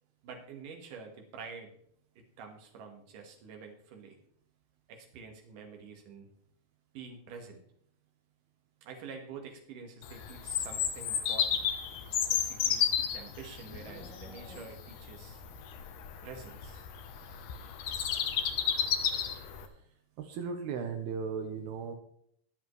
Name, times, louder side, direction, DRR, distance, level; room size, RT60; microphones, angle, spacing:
voice 1, 0.2-1.7 2.4-4.2 4.9-6.3 6.9-7.6 8.8-11.7 12.3-15.4 16.2-16.9, right 5 dB, 60° right, 3 dB, 2.9 m, -47 dB
Bird vocalization bird call bird song, 10.0-19.7, left 8 dB, 70° left, 2.1 m, -33 dB
Livestock farm animals working animals, 11.9-15.1, left 2 dB, 50° left, 3.7 m, -55 dB
voice 2, 20.2-22.0, right 5 dB, 80° right, 5 dB, 2.7 m, -36 dB
22.0 x 7.3 x 3.2 m, 0.68 s
omnidirectional pair, 4.7 m